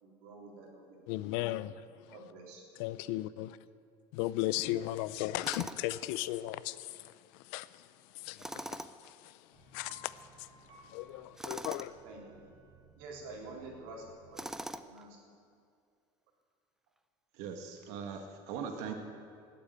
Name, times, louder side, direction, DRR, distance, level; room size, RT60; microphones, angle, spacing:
voice 1, 0.0-1.2 2.1-2.6 12.0-12.4 13.0-14.5 14.8-15.2, right 2 dB, 90° right, -1 dB, 3.9 m, -48 dB
voice 2, 1.1-1.7 2.8-3.6 4.1-6.7 7.5-7.7 8.3-8.4 9.7-10.0 10.9-11.9, left 16 dB, 80° left, 17 dB, 0.6 m, -35 dB
Tools, 5.4-6.0 8.4-9.1 11.4-11.9 14.4-15.1, right 1 dB, 5° right, 0.5 m, -42 dB
sound 1, 9.5-14.5, right 2 dB, 30° right, 4.1 m, -59 dB
voice 3, 17.3-18.9, right 6 dB, 70° right, 4 dB, 1.6 m, -40 dB
19.0 x 8.5 x 9.0 m, 2.3 s
cardioid pair, 140°, 12 cm